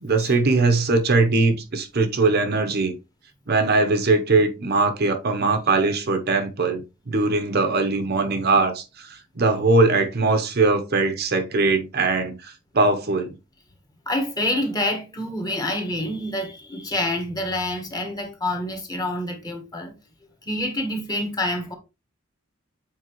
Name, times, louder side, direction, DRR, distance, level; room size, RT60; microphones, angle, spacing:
voice 1, 0.0-2.9 3.5-13.3, right 3 dB, 50° right, 0.8 m, -21 dB
voice 2, 14.0-19.9 20.4-21.7, left 1 dB, 20° left, 1.4 m, -27 dB
7.5 x 4.3 x 3.0 m
head